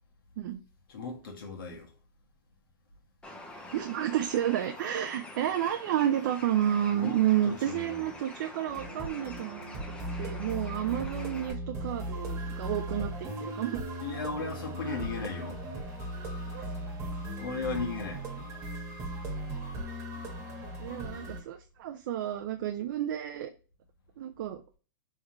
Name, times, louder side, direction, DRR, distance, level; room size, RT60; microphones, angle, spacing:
voice 1, 0.9-1.9 6.9-8.1 14.0-15.6 17.4-18.2, left 4 dB, 85° left, 1.5 m, -36 dB
Bird, 3.2-11.5, left 1 dB, 10° left, 0.7 m, -46 dB
voice 2, 3.7-9.6 10.2-13.8 16.5-16.7 20.8-23.5 24.2-24.6, right 11 dB, 60° right, 0.4 m, -30 dB
sound 1, 8.7-21.4, right 1 dB, 25° right, 1.3 m, -38 dB
3.6 x 3.3 x 2.9 m
hypercardioid pair, 150°, 11 cm